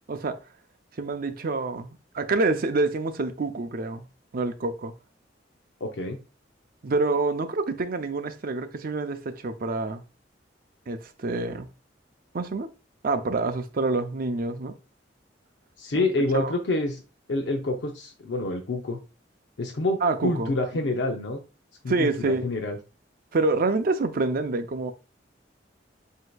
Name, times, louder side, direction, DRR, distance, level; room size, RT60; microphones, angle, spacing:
voice 1, 1.0-4.1 4.3-4.9 6.8-10.0 10.9-11.7 12.3-12.7 13.0-14.8 15.9-16.1 16.3-16.5 20.0-20.5 21.9-22.5 23.3-24.9, right 3 dB, 50° right, 0.5 m, -27 dB
voice 2, 5.8-6.2 15.8-17.0 17.3-19.0 19.6-21.4 21.8-22.8, left 2 dB, 75° left, 0.6 m, -27 dB
7.7 x 2.8 x 2.3 m
head